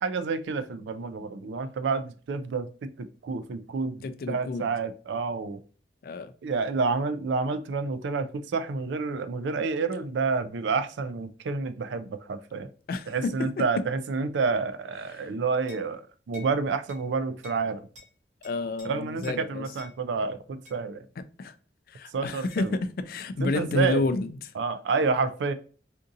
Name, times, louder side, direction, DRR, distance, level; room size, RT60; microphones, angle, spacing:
voice 1, 0.0-5.6 6.4-12.7 13.1-17.9 18.8-21.1 22.1-22.7 23.4-24.1 24.6-25.5, right 4 dB, 80° right, 0.4 m, -29 dB
voice 2, 4.0-4.7 6.0-6.3 12.9-13.3 18.4-19.6 21.4-21.5 21.9-24.4, left 3 dB, 55° left, 0.3 m, -29 dB
sound 1, 15.7-15.9 16.3-16.5 16.9-17.0 17.4-17.6 17.9-18.1 18.4-18.9 19.2-19.4 19.8-19.9 20.6-20.8 22.5-22.7, left 4 dB, 40° right, 1.3 m, -49 dB
3.7 x 2.6 x 2.6 m
head